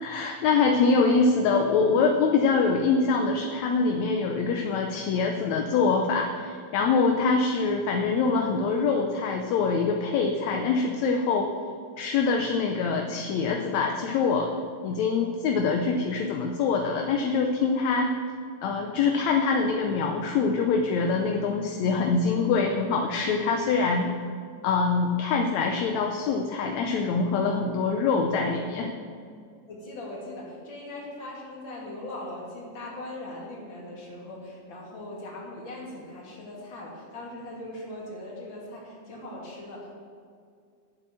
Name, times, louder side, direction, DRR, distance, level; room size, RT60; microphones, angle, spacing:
voice 1, 0.0-11.5 12.0-14.5 14.8-18.2 18.6-24.1 24.6-28.9, left 4 dB, 75° left, 2 dB, 1.8 m, -24 dB
voice 2, 29.7-39.9, left 1 dB, 40° left, -4 dB, 2.8 m, -40 dB
9.1 x 7.4 x 8.5 m, 2.3 s
omnidirectional pair, 3.8 m